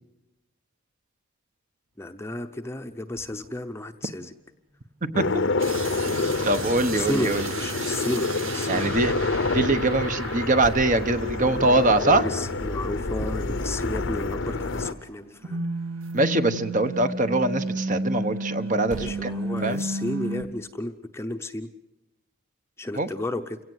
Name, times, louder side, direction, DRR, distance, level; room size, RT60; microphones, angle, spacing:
sound 1, 1.9-19.9, equal, 80° right, 6.0 m, -51 dB
voice 1, 2.0-4.3 6.9-8.9 12.0-15.6 19.0-21.7 22.8-23.6, left 1 dB, 10° left, 6 dB, 0.8 m, -33 dB
sound 2, 5.1-14.9, left 3 dB, 60° left, 0.8 m, -28 dB
sound 3, 5.6-15.1 15.4-20.4, right 2 dB, 65° right, 2.0 m, -33 dB
voice 2, 6.4-7.5 8.7-9.1 9.5-12.2 16.1-19.3 19.6-19.8 23.0-23.1, right 2 dB, 35° right, 10 dB, 1.1 m, -23 dB
29.5 x 17.0 x 8.0 m, 0.97 s
head